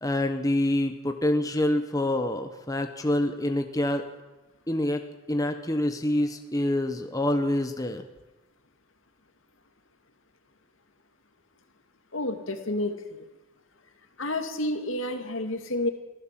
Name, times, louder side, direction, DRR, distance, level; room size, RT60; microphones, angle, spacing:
voice 1, 0.0-4.1 4.7-5.0 5.3-8.1, left 1 dB, 15° left, 6 dB, 1.1 m, -26 dB
voice 2, 12.1-13.2 14.2-15.9, left 1 dB, 75° left, 6 dB, 2.3 m, -30 dB
24.0 x 15.5 x 7.6 m, 1.1 s
head